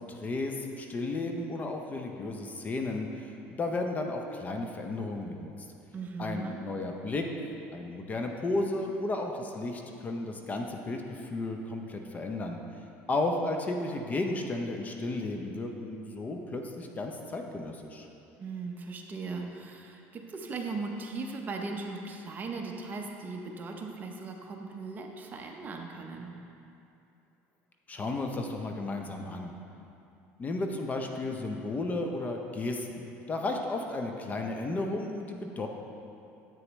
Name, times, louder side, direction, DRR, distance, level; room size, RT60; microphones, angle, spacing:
voice 1, 0.1-5.5 6.2-7.3 7.7-12.6 13.1-18.1 27.9-29.5 30.4-35.7, left 2 dB, 25° left, 3 dB, 0.6 m, -33 dB
voice 2, 5.9-6.6 18.4-26.3, right 3 dB, 30° right, 2 dB, 0.7 m, -38 dB
8.4 x 6.6 x 3.1 m, 2.7 s
cardioid pair, 120°, 6 cm